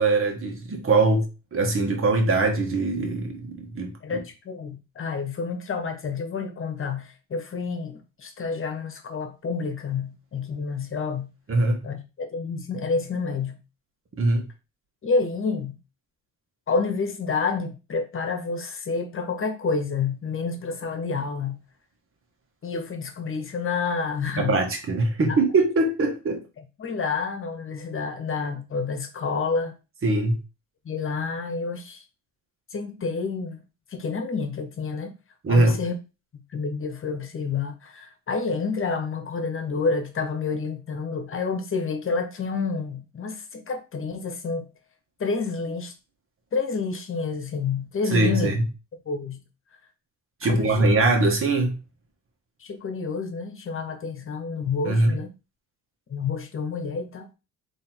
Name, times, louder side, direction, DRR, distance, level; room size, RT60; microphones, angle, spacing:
voice 1, 0.0-4.2 11.5-11.8 14.2-14.4 24.4-26.4 30.0-30.4 35.4-35.8 48.1-48.6 50.4-51.7 54.8-55.1, right 2 dB, 45° right, 1.6 m, -22 dB
voice 2, 4.0-11.3 11.8-13.6 15.0-15.7 16.7-21.6 22.6-24.6 25.3-25.4 26.8-29.7 30.8-32.0 32.7-33.6 33.9-35.1 35.5-35.9 36.5-44.7 45.2-45.9 46.5-48.5 49.1-49.4 50.4-50.8 52.6-55.3 56.1-57.3, left 4 dB, 45° left, 1.2 m, -29 dB
3.6 x 3.2 x 4.5 m
cardioid pair, 90°, 30 cm